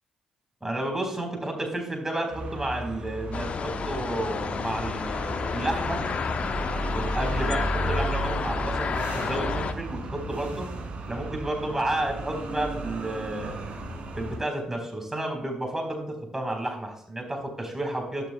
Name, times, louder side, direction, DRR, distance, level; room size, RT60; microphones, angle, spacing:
voice 1, 0.6-6.0 6.8-10.7 11.1-13.6 14.2-18.3, right 1 dB, 15° right, 3 dB, 4.0 m, -31 dB
sound 1, 2.3-14.4, right 2 dB, 50° right, 3.0 m, -34 dB
sound 2, 3.3-9.7, left 6 dB, 45° left, 0.7 m, -31 dB
12.0 x 11.5 x 2.3 m, 0.71 s
figure-of-eight pair, 40°, 3 cm